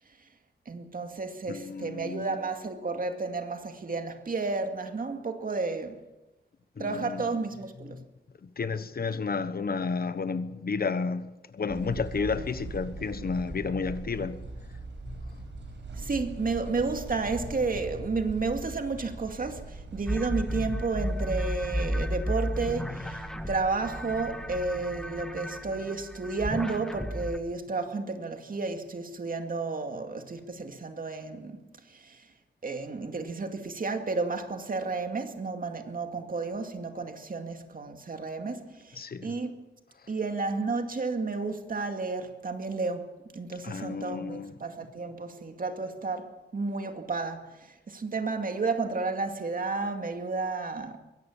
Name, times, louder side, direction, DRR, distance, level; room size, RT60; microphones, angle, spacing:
voice 1, 0.7-6.0 6.8-8.0 16.0-31.6 31.9-32.3 32.6-39.6 40.1-51.0, right 3 dB, 50° right, 2.3 m, -32 dB
voice 2, 1.5-2.3 6.8-7.3 8.4-14.4 15.1-15.2 39.0-39.3 43.6-44.5, left 4 dB, 55° left, 1.1 m, -32 dB
sound 1, 11.7-25.2, right 2 dB, 80° right, 5.6 m, -42 dB
sound 2, 20.1-27.4, equal, 5° left, 1.6 m, -33 dB
22.5 x 17.0 x 7.3 m
wide cardioid pair, 105°, 19 cm